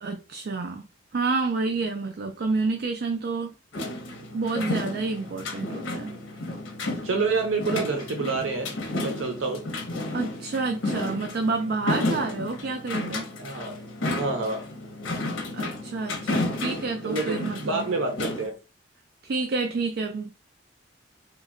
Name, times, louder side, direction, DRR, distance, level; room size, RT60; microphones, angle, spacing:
voice 1, 0.0-0.9 1.1-3.5 4.3-6.2 10.1-13.3 15.5-17.9 19.2-20.3, right 3 dB, 55° right, 0.3 m, -29 dB
sound 1, 3.7-18.5, left 2 dB, 80° left, 0.7 m, -32 dB
voice 2, 6.8-9.7 13.4-13.8 14.1-14.7 17.0-18.5, right 3 dB, 90° right, 0.7 m, -28 dB
2.9 x 2.1 x 3.6 m
head